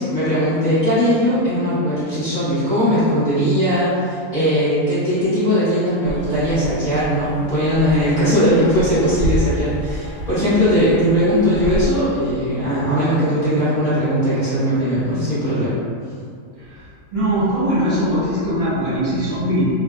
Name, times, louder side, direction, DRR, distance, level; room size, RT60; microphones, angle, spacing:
voice 1, 0.0-15.8, equal, 35° left, -17 dB, 1.2 m, -19 dB
sound 1, 6.0-12.0, right 1 dB, 75° left, 1.0 m, -28 dB
voice 2, 17.1-19.7, equal, 45° right, -11 dB, 1.4 m, -20 dB
2.8 x 2.4 x 2.3 m, 2.3 s
omnidirectional pair, 1.5 m